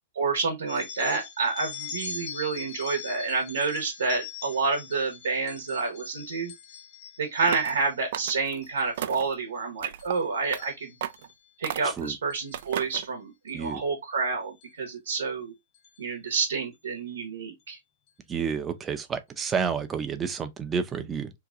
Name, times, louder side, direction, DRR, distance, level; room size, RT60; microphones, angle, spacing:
voice 1, 0.2-6.5 7.2-11.0 11.6-15.5 16.0-17.8, right 4 dB, 85° right, 0.9 m, -29 dB
sound 1, 0.7-8.0 8.5-8.8 9.2-9.6 10.0-11.3 12.3-12.5 13.5-13.6 14.6-14.7 15.1-15.2 15.7-16.0, left 6 dB, 45° left, 0.8 m, -42 dB
sound 2, 7.4-7.8 8.1-8.6 9.0-9.3 9.8-10.2 10.5-10.7 11.0-11.3 11.6-12.1 12.5-13.1, right 11 dB, 65° right, 0.3 m, -34 dB
voice 2, 11.8-12.2 13.5-13.8 18.3-21.3, right 6 dB, 20° right, 0.6 m, -30 dB
2.8 x 2.2 x 3.6 m
hypercardioid pair, 120°, 0 cm